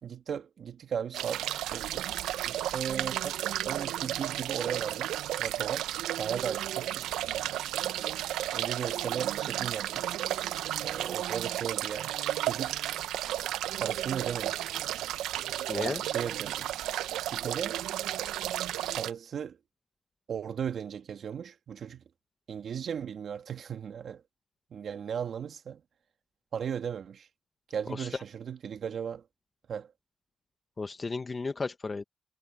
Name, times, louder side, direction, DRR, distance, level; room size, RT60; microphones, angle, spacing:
voice 1, 0.0-1.5 1.7-2.1 2.4-5.9 6.2-7.1 8.2-10.1 10.8-12.7 13.8-14.6 15.7-17.8 18.9-19.6 20.3-22.0 22.5-24.2 24.7-25.8 26.5-27.3 27.7-29.3 29.7-29.9, right 8 dB, 55° right, 2.0 m, -37 dB
sound 1, 1.1-19.1, right 13 dB, 85° right, 0.7 m, -33 dB
voice 2, 15.7-16.0 27.9-28.2 30.8-32.0, left 4 dB, 30° left, 1.0 m, -34 dB
cardioid pair, 90°, 0 cm